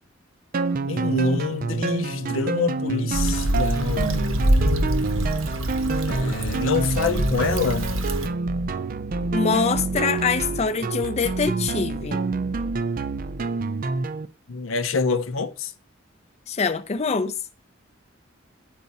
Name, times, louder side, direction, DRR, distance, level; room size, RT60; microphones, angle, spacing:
sound 1, 0.5-14.3, right 3 dB, 45° right, 0.4 m, -27 dB
voice 1, 0.9-4.4 5.2-5.4 6.0-8.0 14.5-15.7, left 4 dB, 80° left, 0.7 m, -26 dB
Stream / Traffic noise roadway noise / Trickle dribble, 3.1-8.3, right 1 dB, 85° right, 1.0 m, -25 dB
voice 2, 9.3-12.2 16.5-17.3, left 5 dB, 30° left, 0.4 m, -24 dB
9.4 x 4.6 x 4.1 m
head